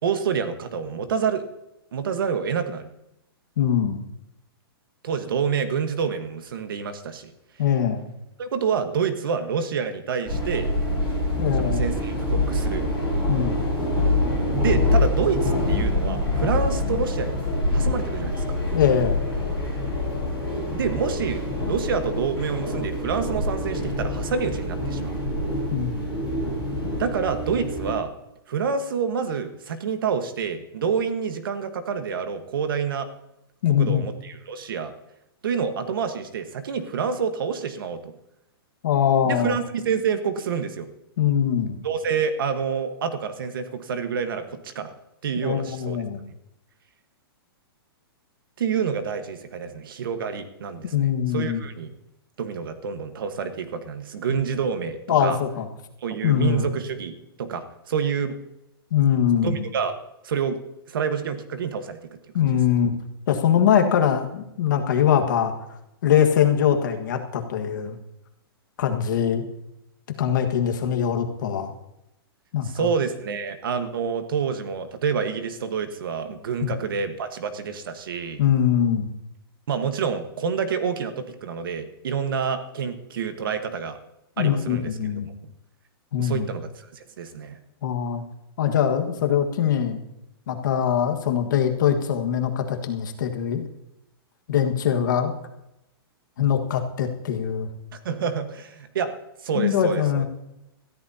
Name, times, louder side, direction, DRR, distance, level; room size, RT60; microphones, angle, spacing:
voice 1, 0.0-1.5 1.9-2.9 5.0-7.3 8.4-10.7 11.5-12.8 14.5-17.4 17.7-18.4 20.7-25.2 26.9-28.1 28.5-33.1 33.7-34.9 35.4-38.1 39.2-40.9 41.8-44.9 45.2-46.0 48.6-51.9 52.4-55.4 56.0-58.4 59.4-60.0 60.2-60.6 60.9-62.0 62.4-62.5 72.6-78.4 79.7-84.0 84.4-84.9 85.4-85.5 86.2-87.6 98.0-99.1 99.4-100.2, right 6 dB, 60° right, 8 dB, 1.4 m, -28 dB
voice 2, 3.6-4.0 7.6-8.1 11.4-11.8 13.3-13.7 18.7-19.2 25.7-26.2 33.6-34.1 38.8-39.5 41.2-41.8 45.4-46.2 50.9-51.6 54.3-54.4 55.1-55.7 56.2-56.7 58.9-59.6 62.3-62.9 63.3-65.5 66.0-68.0 68.8-69.4 70.2-71.7 72.5-72.9 76.6-76.7 78.4-79.1 84.4-85.3 86.1-86.5 87.8-88.2 88.6-90.0 90.5-93.6 94.5-95.3 96.4-97.7 99.5-100.2, left 9 dB, 50° left, 4 dB, 1.6 m, -22 dB
sound 1, 10.3-28.0, left 2 dB, 10° right, 4.7 m, -25 dB
21.5 x 14.0 x 2.8 m, 0.87 s
hypercardioid pair, 180°, 13 cm